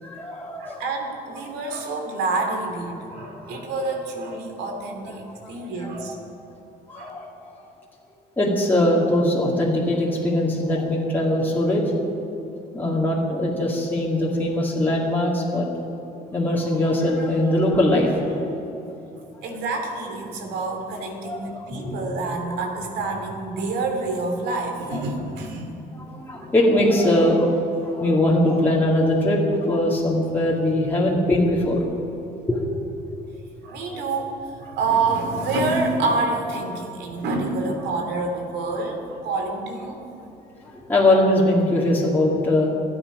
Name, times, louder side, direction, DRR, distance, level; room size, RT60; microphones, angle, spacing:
voice 1, 0.0-0.8 3.4-3.6 5.1-5.2 5.4-5.5 5.8-5.9 6.9-7.3 8.4-11.9 12.7-15.7 16.3-18.4 21.2-22.3 24.9-25.0 25.9-31.8 32.5-32.7 33.9-34.0 40.6-42.7, left 1 dB, 10° left, -5 dB, 2.3 m, -21 dB
voice 2, 0.6-6.2 6.9-7.1 19.4-25.7 26.4-26.5 33.6-40.0, right 3 dB, 90° right, 3 dB, 2.7 m, -27 dB
26.5 x 9.0 x 5.1 m, 2.9 s
cardioid pair, 110°, 17 cm